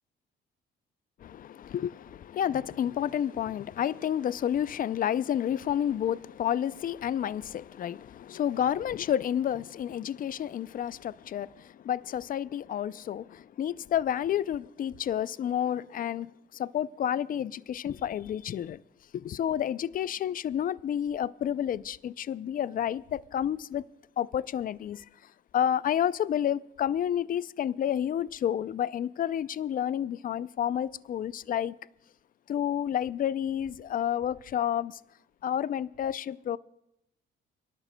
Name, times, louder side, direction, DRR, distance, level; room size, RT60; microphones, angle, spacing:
voice 1, 1.2-18.8 19.1-23.8 24.2-25.1 25.5-31.7 32.5-35.0 35.4-36.6, left 10 dB, 45° left, 0.4 m, -30 dB
30.0 x 11.5 x 2.2 m
cardioid pair, 90°, 20 cm